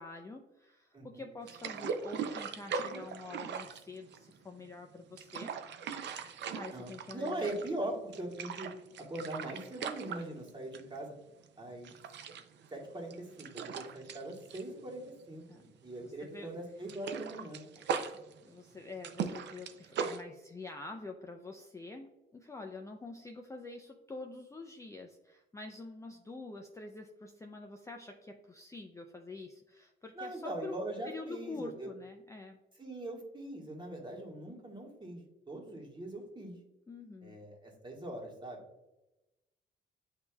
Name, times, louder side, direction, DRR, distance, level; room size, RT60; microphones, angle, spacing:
voice 1, 0.0-5.5 6.6-7.5 15.5-15.6 16.0-16.5 17.9-18.1 18.4-32.6 36.9-37.4, left 3 dB, 15° left, 3 dB, 0.4 m, -46 dB
voice 2, 0.9-1.4 6.7-8.7 9.0-11.2 11.6-11.9 12.7-17.6 30.1-31.9 32.8-35.2 35.5-36.5 37.2-38.6, right 1 dB, 25° right, -2 dB, 1.4 m, -41 dB
sound 1, 1.5-4.5 5.0-7.8 8.1-11.0 11.3-11.5 11.8-15.6 15.9-16.1 16.4-20.2, right 6 dB, 65° right, 0.5 m, -40 dB
8.1 x 2.7 x 2.2 m, 0.98 s
cardioid pair, 90°, 20 cm